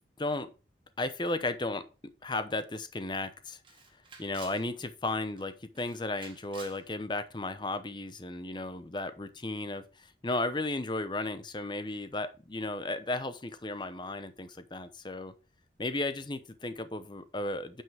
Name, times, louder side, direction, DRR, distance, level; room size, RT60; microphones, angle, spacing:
voice 1, 0.2-0.5 1.0-1.8 2.2-3.6 4.2-15.3 15.8-17.8, left 2 dB, 25° left, 12 dB, 0.8 m, -34 dB
Camera, 2.6-2.7 3.0-3.1 3.6-4.7 5.1-5.4 5.7-6.8, right 5 dB, 30° right, 1.6 m, -51 dB
9.2 x 5.6 x 3.5 m, 0.33 s
head